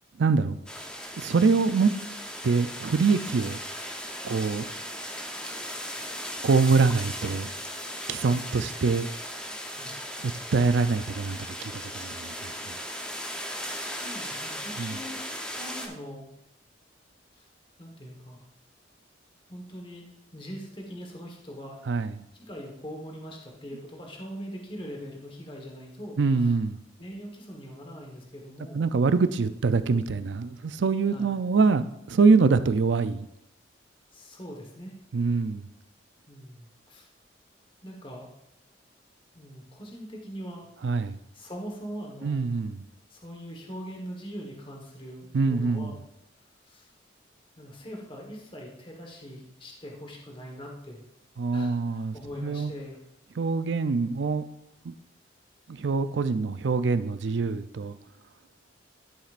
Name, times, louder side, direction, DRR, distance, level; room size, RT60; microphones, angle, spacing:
voice 1, 0.2-0.6 1.2-1.9 2.4-3.6 4.2-4.7 6.4-7.5 8.1-9.1 10.2-12.8 14.8-15.0 21.9-22.1 26.2-26.8 28.7-33.3 35.1-35.6 40.8-41.2 42.2-42.9 45.3-46.0 51.4-52.7 53.4-54.5 54.8-54.9 55.7-58.0, right 4 dB, 75° right, 12 dB, 0.5 m, -24 dB
sound 1, 0.7-15.9, equal, 5° left, 0.8 m, -37 dB
voice 2, 9.6-10.0 13.6-15.2 15.5-16.3 17.3-17.5 17.8-18.5 19.5-21.8 22.4-26.5 27.0-28.8 31.1-31.3 34.1-35.0 36.3-37.1 37.8-38.3 39.3-40.7 41.0-42.5 43.1-46.0 46.6-46.9 47.6-51.0 51.5-53.0, equal, 30° left, 0 dB, 1.3 m, -42 dB
12.5 x 7.2 x 2.5 m, 0.81 s
head